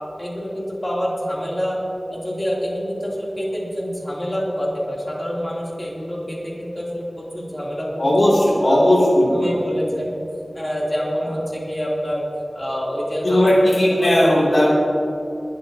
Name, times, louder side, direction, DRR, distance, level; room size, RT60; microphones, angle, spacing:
voice 1, 0.2-1.8 2.1-8.3 8.6-8.8 9.4-10.1 10.5-12.2 12.5-13.4 13.8-14.6, equal, 30° left, -5 dB, 3.2 m, -27 dB
voice 2, 8.0-9.8 13.2-14.7, left 1 dB, 75° left, -5 dB, 2.9 m, -17 dB
20.5 x 12.5 x 2.9 m, 2.8 s
wide cardioid pair, 65°, 0 cm